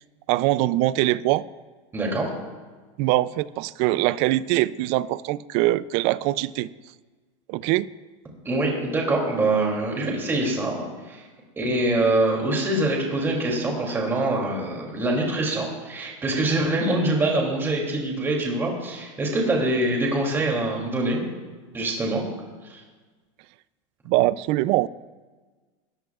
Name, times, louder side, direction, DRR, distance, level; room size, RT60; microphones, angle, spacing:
voice 1, 0.3-1.4 3.0-6.7 7.5-7.9 24.1-24.9, right 16 dB, 40° right, 18 dB, 0.4 m, -22 dB
voice 2, 1.9-2.3 8.4-11.2 11.6-21.2 21.7-22.2 22.6-22.8, right 2 dB, 15° right, -1 dB, 2.8 m, -24 dB
21.0 x 14.5 x 2.4 m, 1.4 s
supercardioid pair, 155°, 17 cm